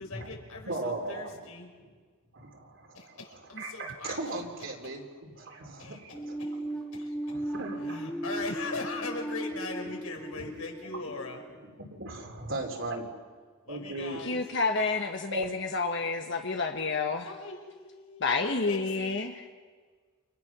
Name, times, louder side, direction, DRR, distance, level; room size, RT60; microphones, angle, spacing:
voice 1, 0.0-1.7 2.9-4.2 5.8-7.4 7.8-11.5 13.6-14.4 17.2-19.3, left 3 dB, 80° left, 2 dB, 5.3 m, -40 dB
voice 2, 0.7-1.4 2.3-3.1 3.6-6.1 6.6-6.7 7.3-8.0 11.8-13.2 13.7-14.2 15.3-15.4, right 2 dB, 60° right, 2 dB, 3.9 m, -37 dB
sound 1, 6.1-11.8, right 1 dB, 5° left, 2.4 m, -37 dB
voice 3, 14.2-17.2 18.2-19.3, left 4 dB, 55° left, 4 dB, 1.3 m, -29 dB
29.5 x 27.5 x 6.2 m, 1.6 s
head